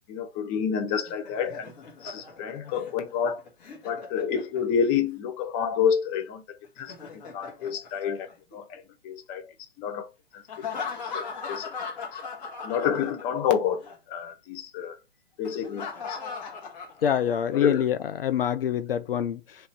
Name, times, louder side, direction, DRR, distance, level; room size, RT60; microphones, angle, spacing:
voice 1, 0.1-1.7 2.0-3.4 3.8-6.9 7.3-8.3 8.5-9.4 9.8-10.1 11.1-11.7 12.6-13.8 14.1-15.0 15.4-16.2 17.5-17.8, left 7 dB, 20° left, 0.6 m, -28 dB
Laughter, 0.9-5.0 6.6-8.8 10.5-13.5 13.8-14.0 15.4-17.6, left 5 dB, 45° left, 1.6 m, -39 dB
voice 2, 17.0-19.7, left 9 dB, 70° left, 0.5 m, -26 dB
3.2 x 3.1 x 4.2 m
figure-of-eight pair, 125°, 30 cm